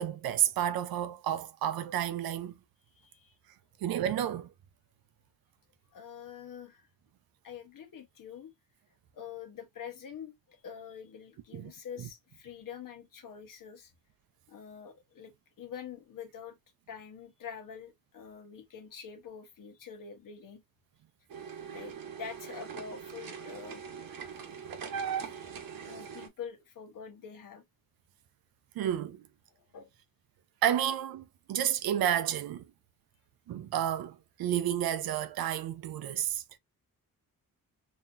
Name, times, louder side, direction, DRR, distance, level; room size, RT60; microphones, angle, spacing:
voice 1, 0.0-2.6 3.8-4.5 11.5-11.7 28.8-29.3 30.6-32.6 33.5-36.4, right 10 dB, 90° right, 0.6 m, -31 dB
voice 2, 2.9-3.4 5.9-6.9 7.4-8.5 9.1-13.9 14.5-16.6 16.9-20.6 21.7-23.8 25.1-25.4 25.8-27.6 29.5-29.9, left 7 dB, 70° left, 1.2 m, -46 dB
sound 1, 21.3-26.3, right 7 dB, 75° right, 1.0 m, -40 dB
4.1 x 2.8 x 2.5 m
cardioid pair, 90°, 35 cm